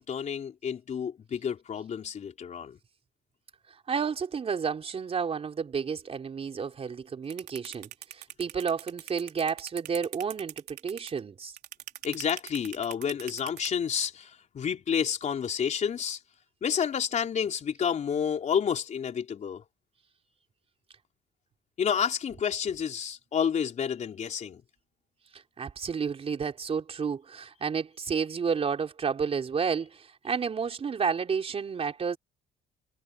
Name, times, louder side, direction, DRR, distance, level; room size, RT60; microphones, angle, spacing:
voice 1, 0.0-2.8 12.0-16.2 16.6-19.6 21.8-24.6, left 7 dB, 45° left, 4.1 m, -30 dB
voice 2, 3.7-11.6 25.3-32.2, right 6 dB, 35° right, 4.3 m, -31 dB
sound 1, 7.3-13.7, right 14 dB, 80° right, 3.5 m, -41 dB
cardioid pair, 110°, 17 cm